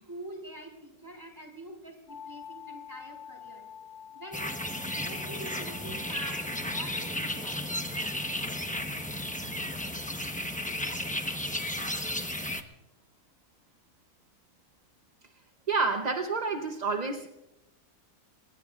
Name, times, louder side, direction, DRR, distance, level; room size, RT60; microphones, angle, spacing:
voice 1, 0.1-3.7 4.1-4.6 4.9-7.6, right 1 dB, 10° right, 2 dB, 3.9 m, -45 dB
sound 1, 2.1-11.9, left 8 dB, 80° left, 2.1 m, -50 dB
sound 2, 4.3-12.6, left 1 dB, 5° left, 0.7 m, -34 dB
voice 2, 15.7-17.3, right 4 dB, 35° right, 5 dB, 0.7 m, -29 dB
25.0 x 20.5 x 2.5 m, 0.94 s
omnidirectional pair, 1.6 m